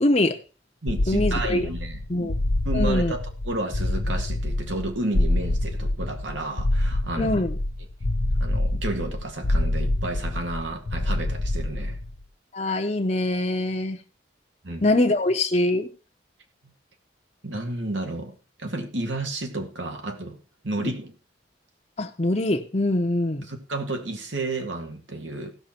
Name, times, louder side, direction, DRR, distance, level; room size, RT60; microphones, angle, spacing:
voice 1, 0.0-0.4 1.1-1.7 2.1-2.3 2.7-3.1 7.2-7.5 12.5-14.0 14.8-15.9 20.8-20.9 22.0-23.5, left 1 dB, 35° left, 3 dB, 0.9 m, -23 dB
voice 2, 0.8-2.3 2.6-7.3 8.4-12.0 14.6-14.8 17.4-20.4 20.6-21.1 23.5-25.5, right 2 dB, 85° right, 4 dB, 2.1 m, -31 dB
sound 1, 0.9-12.2, left 1 dB, 90° left, 0.8 m, -26 dB
16.5 x 6.3 x 4.4 m, 0.34 s
head